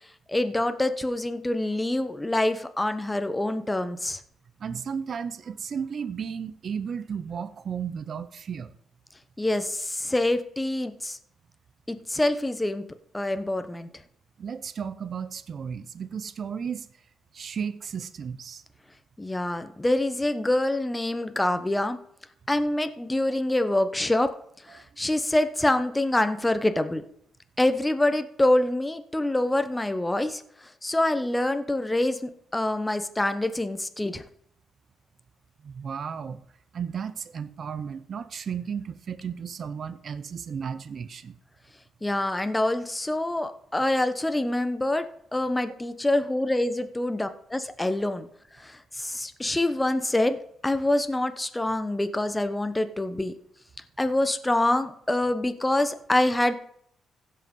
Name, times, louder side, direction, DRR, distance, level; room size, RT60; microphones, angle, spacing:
voice 1, 0.3-4.2 9.4-11.2 11.9-12.8 13.1-13.9 19.2-22.0 22.5-24.3 24.7-27.0 27.6-30.4 30.8-34.2 42.0-45.0 45.3-48.3 48.6-50.4 50.6-53.3 54.0-56.5, left 1 dB, 10° left, 10 dB, 1.0 m, -26 dB
voice 2, 4.6-8.7 14.4-16.8 17.3-18.6 24.8-24.9 35.6-36.4 36.7-41.3, right 7 dB, 50° right, 12 dB, 0.8 m, -34 dB
15.5 x 5.7 x 5.5 m, 0.67 s
cardioid pair, 90°, 0 cm